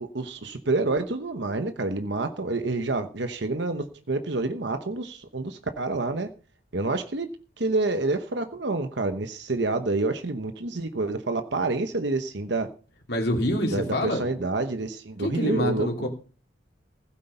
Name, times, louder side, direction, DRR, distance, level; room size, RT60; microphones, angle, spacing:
voice 1, 0.0-6.3 6.7-7.3 7.6-12.7 13.7-16.1, right 2 dB, 60° right, 8 dB, 1.0 m, -28 dB
voice 2, 13.1-14.2 15.2-16.1, left 1 dB, 55° left, 1 dB, 3.0 m, -26 dB
16.0 x 8.5 x 5.5 m, 0.38 s
head